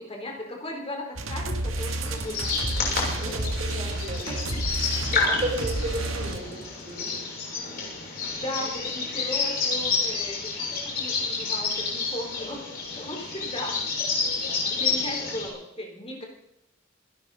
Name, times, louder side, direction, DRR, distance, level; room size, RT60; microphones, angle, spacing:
voice 1, 0.0-3.5 4.3-4.7 5.0-5.4 7.0-7.1 8.3-12.6 12.9-13.8 14.7-16.2, left 1 dB, 30° left, 1 dB, 3.6 m, -37 dB
sound 1, 1.2-6.7, right 1 dB, 80° right, 1.8 m, -31 dB
sound 2, 1.8-15.5, left 4 dB, 50° left, 7.2 m, -30 dB
voice 2, 2.8-4.6 5.0-6.6 6.8-7.2 13.4-13.5 14.8-15.0, right 1 dB, 35° right, 1 dB, 5.9 m, -35 dB
27.5 x 12.0 x 4.1 m, 0.81 s
head